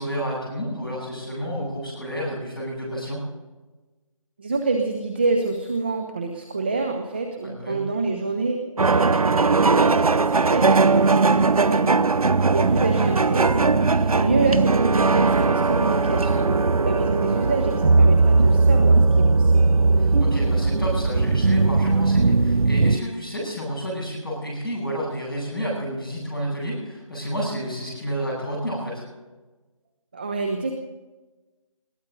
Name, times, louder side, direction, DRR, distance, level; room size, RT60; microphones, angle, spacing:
voice 1, 0.0-3.2 7.4-7.8 14.0-14.3 20.0-29.0, equal, ahead, -13 dB, 6.7 m, -30 dB
voice 2, 4.4-8.6 8.9-12.2 12.5-19.7 30.1-30.7, right 3 dB, 20° right, 4 dB, 0.8 m, -27 dB
sound 1, 8.8-23.0, right 3 dB, 85° right, 0.8 m, -19 dB
21.5 x 16.0 x 3.9 m, 1.2 s
figure-of-eight pair, 170°, 18 cm